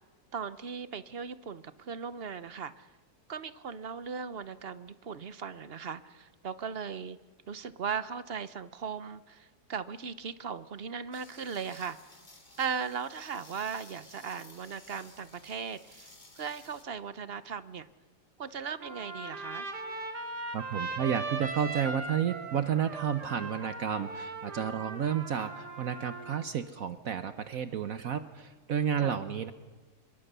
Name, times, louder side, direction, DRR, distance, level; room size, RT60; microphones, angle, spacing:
voice 1, 0.3-2.9 3.3-7.2 7.5-12.0 12.6-17.9 18.4-19.7 29.0-29.2, right 6 dB, 45° right, 14 dB, 0.9 m, -38 dB
sound 1, 11.1-16.8, left 2 dB, 30° left, 2.8 m, -55 dB
Trumpet, 18.8-26.5, right 3 dB, 85° right, 3.0 m, -39 dB
voice 2, 20.5-29.5, right 8 dB, 60° right, 11 dB, 1.3 m, -31 dB
26.0 x 23.0 x 6.8 m, 1.3 s
omnidirectional pair, 1.7 m